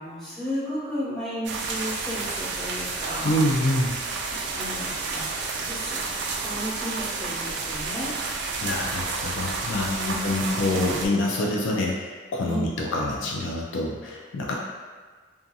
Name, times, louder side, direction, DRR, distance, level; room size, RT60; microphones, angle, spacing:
voice 1, 0.0-3.3 4.3-8.1 9.8-10.6 12.4-12.7, equal, 5° left, -13 dB, 1.1 m, -34 dB
sound 1, 1.4-11.1, right 4 dB, 60° right, 0.3 m, -30 dB
voice 2, 3.2-4.0 8.6-14.6, left 1 dB, 70° left, -2 dB, 0.3 m, -26 dB
2.6 x 2.5 x 2.3 m, 1.5 s
head